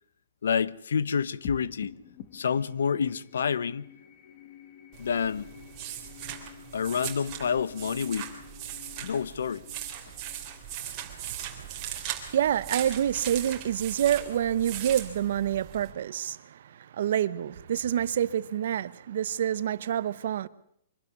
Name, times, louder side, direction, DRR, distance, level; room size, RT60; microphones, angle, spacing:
voice 1, 0.4-2.0 2.3-3.9 5.0-5.5 6.7-8.4 9.0-9.7, left 6 dB, 85° left, 0.9 m, -28 dB
sound 1, 1.4-12.1, left 8 dB, 40° left, 1.7 m, -49 dB
sound 2, 4.9-15.9, right 10 dB, 25° right, 3.2 m, -39 dB
voice 2, 10.8-20.5, right 10 dB, 55° right, 0.9 m, -28 dB
24.5 x 12.5 x 9.6 m
hypercardioid pair, 170°, 0 cm